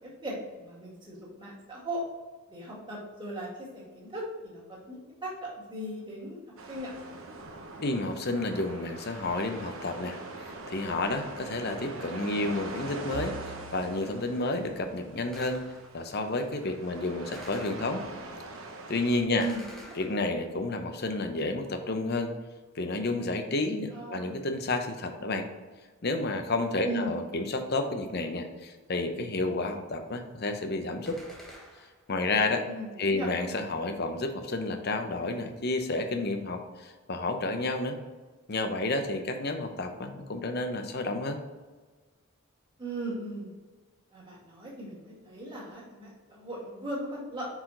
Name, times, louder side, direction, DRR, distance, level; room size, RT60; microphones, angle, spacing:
voice 1, 0.0-2.0 2.5-6.4 6.7-6.9 19.3-19.6 23.9-24.3 26.8-27.2 32.6-33.3 42.8-43.5 44.1-47.5, right 1 dB, 20° right, -5 dB, 1.9 m, -38 dB
sound 1, 6.6-19.2, right 2 dB, 70° right, 0.9 m, -43 dB
voice 2, 7.8-15.6 15.9-18.0 18.9-19.5 20.0-22.3 22.7-25.5 26.0-31.2 32.1-32.7 33.0-38.0 38.5-41.4, left 2 dB, 45° left, 6 dB, 0.7 m, -31 dB
Bowed string instrument, 13.1-17.5, right 4 dB, 85° right, 0.4 m, -49 dB
Gunshot gunfire, 15.3-16.1 17.3-18.3 19.4-20.7 31.1-32.1, equal, ahead, 0.9 m, -49 dB
5.7 x 4.9 x 3.8 m, 1.3 s
head